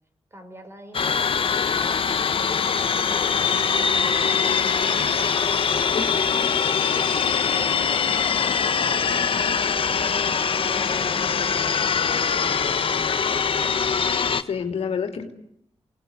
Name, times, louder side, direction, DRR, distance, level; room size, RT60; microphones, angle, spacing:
voice 1, 0.3-2.5 3.1-5.8 6.4-13.2, equal, 25° right, 7 dB, 5.6 m, -46 dB
sound 1, 0.9-14.4, left 6 dB, 55° left, 1.3 m, -22 dB
voice 2, 14.2-15.3, left 6 dB, 70° left, 5 dB, 3.4 m, -29 dB
27.5 x 20.0 x 9.7 m, 0.78 s
cardioid pair, 85°, 11 cm